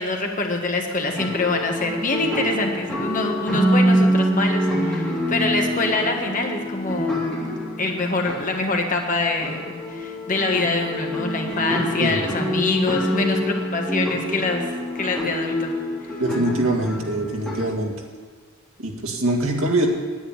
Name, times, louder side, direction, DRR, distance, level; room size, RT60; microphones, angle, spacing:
voice 1, 0.0-7.3 7.8-14.6 14.9-15.7, left 2 dB, 40° left, 2 dB, 1.6 m, -25 dB
sound 1, 1.2-9.0 9.4-17.6, equal, 5° left, 3.3 m, -25 dB
voice 2, 12.0-12.3 16.2-17.9 18.8-19.9, right 2 dB, 80° right, 1 dB, 2.1 m, -23 dB
10.0 x 9.3 x 9.0 m, 1.5 s
head